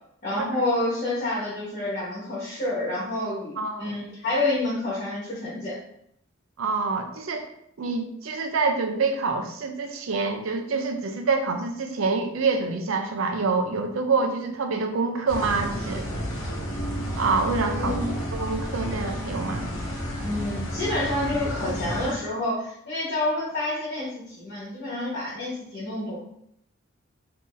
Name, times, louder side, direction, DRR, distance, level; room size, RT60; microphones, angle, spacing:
voice 1, 0.2-5.7 17.7-18.0 20.2-26.2, left 2 dB, 45° left, -7 dB, 1.2 m, -28 dB
voice 2, 3.6-4.0 6.6-7.5 7.8-16.1 17.2-18.0 18.3-19.7, right 4 dB, 85° right, 5 dB, 0.5 m, -26 dB
sound 1, 15.3-22.1, equal, 90° left, 0.8 m, -31 dB
3.8 x 2.8 x 2.6 m, 0.73 s
head